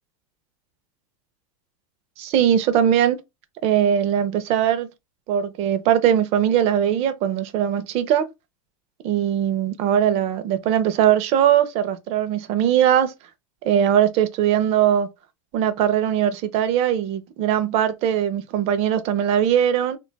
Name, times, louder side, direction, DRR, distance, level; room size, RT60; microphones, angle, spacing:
voice 1, 2.2-3.2 3.6-4.9 5.3-8.3 9.0-13.1 13.6-15.1 15.5-20.0, right 10 dB, 35° right, 0.4 m, -20 dB
2.5 x 2.2 x 3.8 m
supercardioid pair, 145°, 18 cm